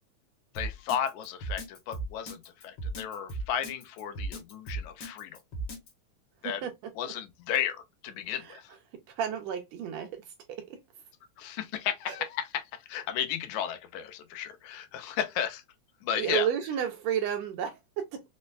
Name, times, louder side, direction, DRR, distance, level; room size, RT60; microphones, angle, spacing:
voice 1, 0.5-5.4 6.4-6.6 7.0-8.7 11.4-15.6 16.0-16.5, left 9 dB, 80° left, 1.9 m, -34 dB
Drum kit, 0.6-5.9, right 3 dB, 60° left, 1.5 m, -36 dB
voice 2, 9.2-10.2 10.5-10.8 12.1-12.2 16.2-18.2, right 9 dB, 80° right, 1.6 m, -31 dB
5.0 x 2.1 x 2.2 m
omnidirectional pair, 3.3 m